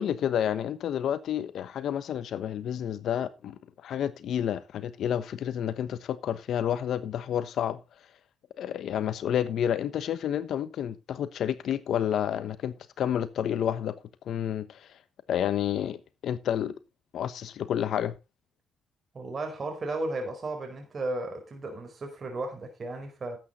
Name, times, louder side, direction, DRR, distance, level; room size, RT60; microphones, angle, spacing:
voice 1, 0.0-7.8 8.6-13.9 14.3-14.9 15.3-16.0 16.2-16.7 17.1-18.1, left 9 dB, 70° left, 1.0 m, -30 dB
voice 2, 19.1-23.4, right 2 dB, 45° right, 4.8 m, -34 dB
12.0 x 8.7 x 4.2 m
supercardioid pair, 65°, 0 cm